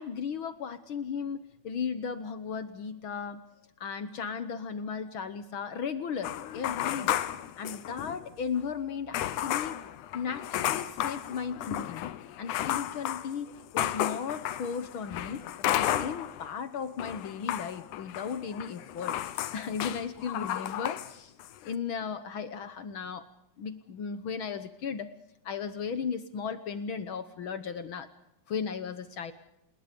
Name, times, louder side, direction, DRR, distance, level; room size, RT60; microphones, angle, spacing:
voice 1, 0.0-3.4 3.8-7.2 7.6-9.8 10.1-12.1 12.4-21.3 21.6-23.2 23.6-25.1 25.4-28.1 28.5-29.3, left 6 dB, 65° left, 11 dB, 1.3 m, -36 dB
sound 1, 6.2-8.3 8.6-8.7 9.1-16.5 16.8-21.1 21.4-21.7, left 12 dB, 80° left, 2.4 m, -33 dB
28.5 x 21.0 x 5.2 m, 0.80 s
omnidirectional pair, 3.5 m